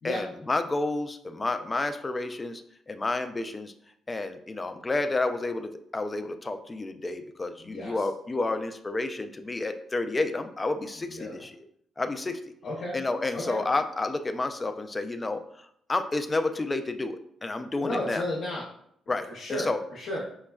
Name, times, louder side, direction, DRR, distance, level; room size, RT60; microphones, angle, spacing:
voice 1, 0.0-2.6 2.9-3.7 4.1-11.5 12.0-12.4 12.9-18.2 19.1-19.8, left 2 dB, 20° left, 8 dB, 0.3 m, -30 dB
voice 2, 7.6-8.1 11.1-11.4 12.6-13.0 13.3-13.6 17.8-18.6 19.3-20.2, left 1 dB, 60° left, -6 dB, 0.7 m, -33 dB
4.9 x 2.1 x 2.3 m, 0.71 s
cardioid pair, 90°, 0 cm